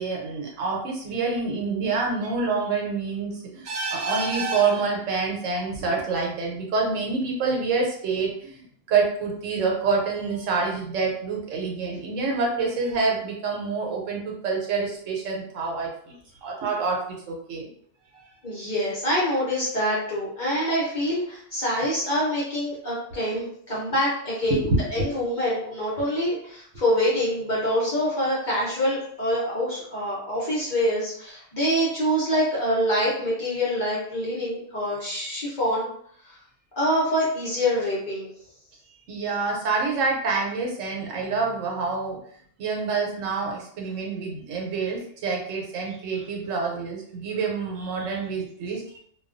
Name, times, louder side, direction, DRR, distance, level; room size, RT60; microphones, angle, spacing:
voice 1, 0.0-16.1 16.4-17.7 18.1-18.3 24.5-25.2 39.1-42.2 42.6-49.0, right 4 dB, 75° right, -1 dB, 1.0 m, -27 dB
voice 2, 18.4-24.7 24.9-35.9 36.2-36.3 36.8-38.3, equal, 45° left, -6 dB, 0.8 m, -25 dB
2.3 x 2.2 x 2.4 m, 0.63 s
omnidirectional pair, 1.3 m